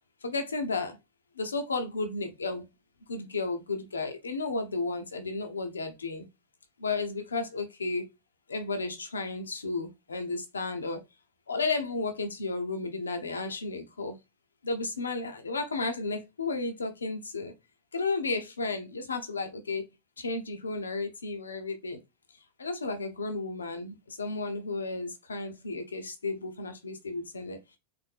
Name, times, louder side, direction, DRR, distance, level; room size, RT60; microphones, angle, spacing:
voice 1, 0.2-1.0 1.4-2.6 3.1-6.3 6.8-8.0 8.5-11.0 11.5-14.2 14.6-17.5 17.9-19.9 20.2-22.0 22.6-27.8, left 3 dB, 75° left, 0.8 m, -33 dB
4.2 x 3.6 x 3.4 m
figure-of-eight pair, 90°, 0 cm